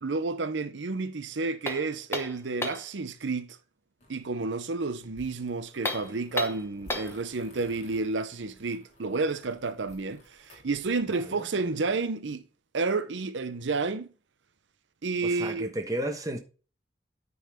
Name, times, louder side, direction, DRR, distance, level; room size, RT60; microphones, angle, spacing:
voice 1, 0.0-3.6 4.1-12.4 12.7-14.1 15.0-15.7, right 3 dB, 85° right, 0.7 m, -30 dB
sound 1, 1.7-2.9 5.7-7.2, left 2 dB, 15° left, 1.0 m, -33 dB
sound 2, 4.0-11.2, left 1 dB, 40° left, 3.0 m, -55 dB
voice 2, 11.1-11.8 15.2-16.4, right 1 dB, 20° right, 1.2 m, -34 dB
9.4 x 4.0 x 5.0 m
head